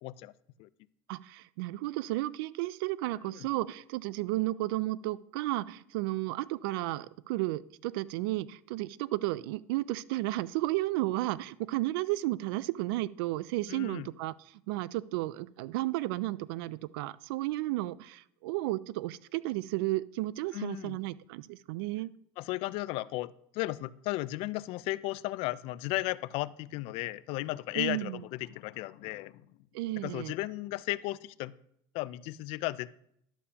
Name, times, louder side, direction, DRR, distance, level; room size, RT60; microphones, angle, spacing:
voice 1, 0.0-0.3 0.6-0.7 3.3-3.5 13.7-14.1 20.5-21.0 22.4-29.4 30.0-31.5 31.9-32.9, left 18 dB, 55° left, 18 dB, 0.4 m, -35 dB
voice 2, 1.1-14.3 14.7-22.1 27.8-28.2 29.7-30.3, right 17 dB, 80° right, 19 dB, 0.4 m, -33 dB
11.5 x 8.2 x 2.9 m, 0.71 s
supercardioid pair, 140°, 12 cm